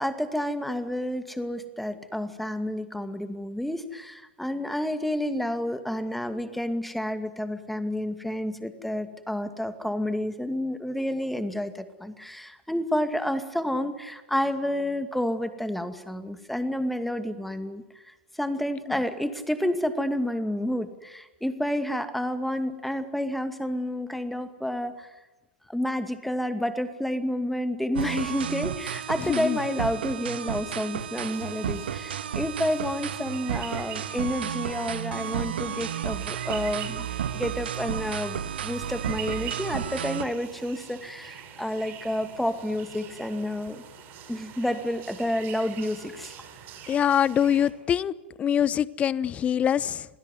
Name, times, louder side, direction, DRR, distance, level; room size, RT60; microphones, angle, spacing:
voice 1, 0.0-25.1 25.7-37.1 37.3-43.8 44.3-46.3, left 1 dB, ahead, 10 dB, 2.3 m, -30 dB
sound 1, 28.0-40.2, right 9 dB, 65° right, 1.7 m, -32 dB
voice 2, 29.3-29.6 46.9-48.1 48.4-50.1, left 9 dB, 20° left, 21 dB, 0.9 m, -24 dB
sound 2, 31.2-47.7, right 9 dB, 35° right, 6.5 m, -45 dB
27.5 x 19.5 x 9.6 m, 1.1 s
figure-of-eight pair, 100°, 6 cm